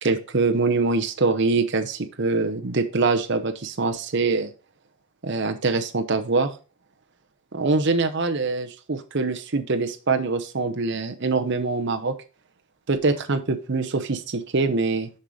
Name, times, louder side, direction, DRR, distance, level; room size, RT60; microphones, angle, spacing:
voice 1, 0.0-4.5 5.2-6.5 7.5-12.1 12.9-15.1, right 3 dB, 55° right, 7 dB, 0.9 m, -24 dB
6.6 x 5.6 x 5.0 m, 0.34 s
head